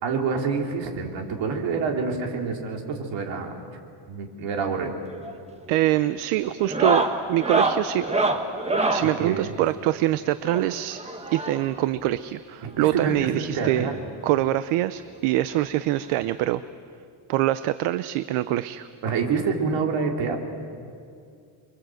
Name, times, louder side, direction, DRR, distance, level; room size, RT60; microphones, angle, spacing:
voice 1, 0.0-3.6 4.1-5.0 9.0-9.5 12.6-14.0 19.0-20.4, right 5 dB, 60° right, 2 dB, 3.6 m, -27 dB
sound 1, 5.1-5.4 5.7-6.0 6.6-9.1 10.4-11.8 12.9-13.0 13.2-13.3 13.7-13.8 15.1-15.2 16.6-16.7, right 2 dB, 15° right, 1.5 m, -26 dB
voice 2, 5.7-8.1 8.9-11.0 11.3-13.9 14.2-16.6 17.3-18.9, right 14 dB, 80° right, 14 dB, 0.8 m, -24 dB
29.5 x 23.5 x 7.8 m, 2.4 s
cardioid pair, 165°, 50 cm